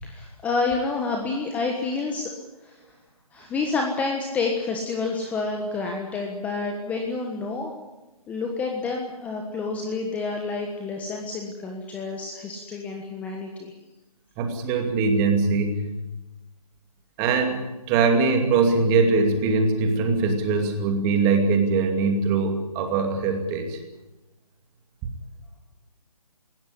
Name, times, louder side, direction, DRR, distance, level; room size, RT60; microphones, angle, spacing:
voice 1, 0.0-2.3 2.6-2.7 3.3-7.7 8.3-13.7, left 4 dB, 5° left, 2 dB, 1.3 m, -29 dB
voice 2, 14.4-15.9 17.2-23.8, right 4 dB, 15° right, 5 dB, 2.5 m, -22 dB
20.5 x 17.0 x 10.0 m, 1.1 s
figure-of-eight pair, 150°, 19 cm